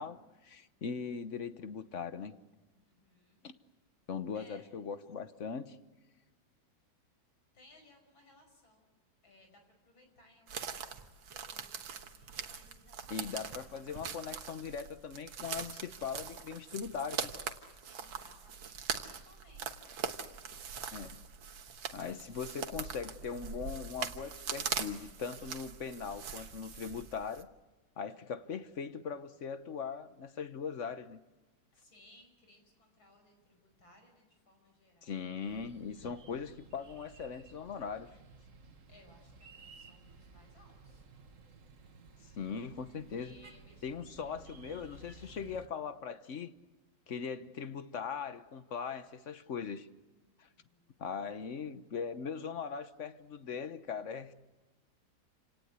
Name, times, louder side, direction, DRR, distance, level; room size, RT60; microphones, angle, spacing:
voice 1, 0.0-2.3 3.4-3.6 4.1-5.8 13.1-17.3 20.9-21.2 21.9-27.5 28.0-31.2 35.0-38.1 42.3-43.4 43.8-46.5 47.1-49.9 50.4-50.5 51.0-54.3, left 6 dB, 50° left, 1.1 m, -40 dB
voice 2, 2.8-3.4 4.3-4.7 7.5-8.9 9.2-13.5 17.9-20.1 31.7-35.2 38.9-41.1 43.1-44.6 50.4-51.0, left 2 dB, 85° left, 6.2 m, -63 dB
sound 1, 10.5-27.4, right 7 dB, 75° right, 2.1 m, -42 dB
sound 2, 35.4-45.7, right 3 dB, 45° right, 1.7 m, -56 dB
28.5 x 18.0 x 8.2 m
omnidirectional pair, 2.1 m